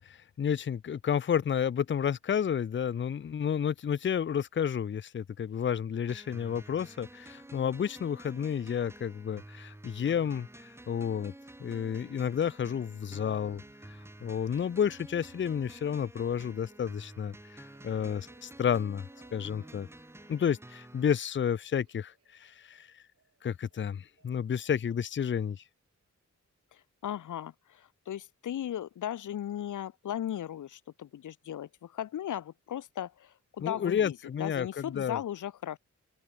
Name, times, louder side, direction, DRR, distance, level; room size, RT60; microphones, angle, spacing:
voice 1, 0.1-11.3 11.6-13.6 14.2-19.0 19.3-19.9 20.3-23.0 23.4-25.6 33.6-35.2, left 8 dB, 40° left, 0.5 m, -31 dB
sound 1, 6.1-21.1, right 1 dB, 10° right, 1.3 m, -50 dB
sound 2, 13.4-25.2, right 5 dB, 55° right, 7.3 m, -66 dB
voice 2, 26.7-35.8, left 10 dB, 85° left, 0.7 m, -37 dB
open air
wide cardioid pair, 160°, 30 cm